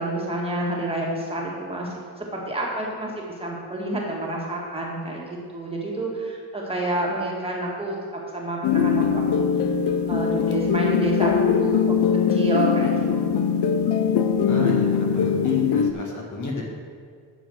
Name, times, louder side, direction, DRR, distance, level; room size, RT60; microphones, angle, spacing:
voice 1, 0.0-1.9 2.2-5.2 5.5-9.5 9.9-12.0 12.3-12.9 13.2-13.4, right 1 dB, 15° right, -3 dB, 1.8 m, -29 dB
sound 1, 8.6-15.9, left 7 dB, 80° left, 0.8 m, -21 dB
voice 2, 14.5-16.7, left 2 dB, 45° left, -1 dB, 1.9 m, -31 dB
10.5 x 7.2 x 6.3 m, 2.1 s
wide cardioid pair, 175°, 39 cm